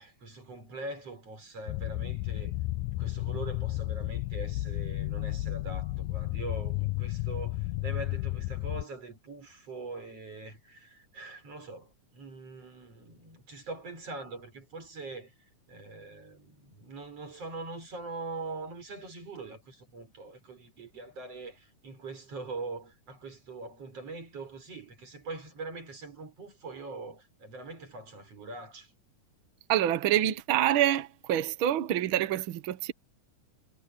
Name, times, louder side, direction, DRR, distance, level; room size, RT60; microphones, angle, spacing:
voice 1, 0.0-2.5 3.0-15.3 15.7-28.9, right 3 dB, 45° right, 7.3 m, -42 dB
sound 1, 1.7-8.8, left 18 dB, 85° left, 2.2 m, -33 dB
voice 2, 29.7-32.9, right 12 dB, 75° right, 1.2 m, -26 dB
omnidirectional pair, 3.7 m